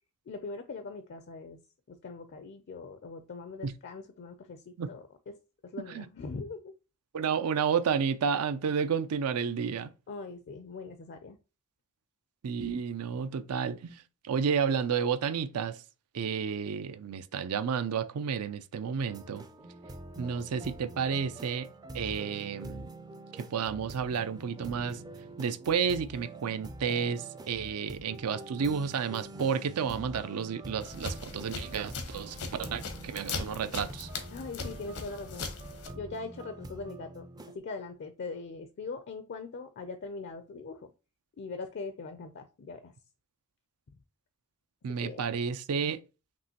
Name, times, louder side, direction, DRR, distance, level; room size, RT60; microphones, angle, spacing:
voice 1, 0.3-1.6 1.9-5.4 5.6-6.7 10.1-11.4 34.3-35.5 35.9-37.3 37.5-40.9 41.4-42.9 45.0-45.2, left 4 dB, 50° left, 0.4 m, -41 dB
voice 2, 7.1-9.9 12.4-15.8 16.1-19.5 20.2-21.7 21.9-22.9 23.3-25.0 25.4-34.1 44.8-46.0, right 6 dB, 80° right, 0.4 m, -31 dB
sound 1, 19.1-37.6, right 2 dB, 15° right, 0.4 m, -46 dB
sound 2, 30.8-35.9, left 3 dB, 85° left, 0.9 m, -39 dB
5.3 x 2.9 x 2.8 m
head